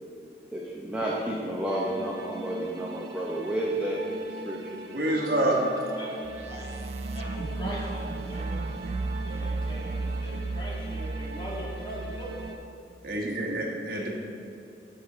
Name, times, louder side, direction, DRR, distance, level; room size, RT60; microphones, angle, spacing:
voice 1, 0.5-4.8, right 1 dB, 10° right, -4 dB, 0.8 m, -31 dB
sound 1, 1.7-12.6, right 3 dB, 85° right, 1.0 m, -42 dB
voice 2, 4.9-5.8 13.0-14.1, right 1 dB, 55° right, -2 dB, 1.4 m, -27 dB
sound 2, 6.2-12.5, right 3 dB, 40° right, 0.4 m, -34 dB
voice 3, 7.1-8.7 9.2-12.6 13.9-14.1, equal, 30° left, -7 dB, 2.3 m, -40 dB
8.0 x 6.2 x 6.1 m, 2.7 s
head